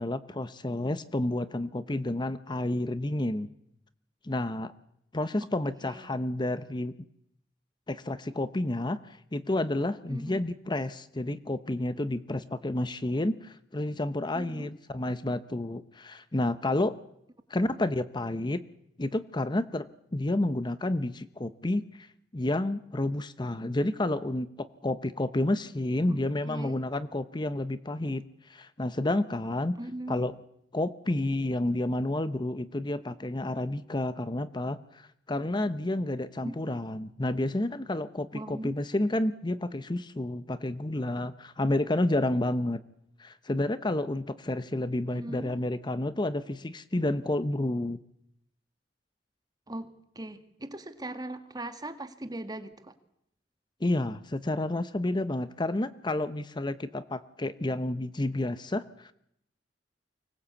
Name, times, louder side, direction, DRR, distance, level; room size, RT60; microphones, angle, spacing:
voice 1, 0.0-3.5 4.2-4.7 5.1-6.9 7.9-17.0 17.5-18.6 19.0-19.9 20.1-22.1 22.3-29.8 30.1-30.4 30.7-42.8 43.2-48.0 53.8-59.1, left 1 dB, 25° left, 13 dB, 0.8 m, -30 dB
voice 2, 5.8-6.1 10.1-10.4 14.3-14.7 26.1-26.8 29.8-30.2 36.4-36.8 38.3-38.8 45.1-45.6 49.7-52.9, right 1 dB, 25° right, 9 dB, 1.7 m, -40 dB
24.5 x 18.5 x 8.4 m, 0.75 s
head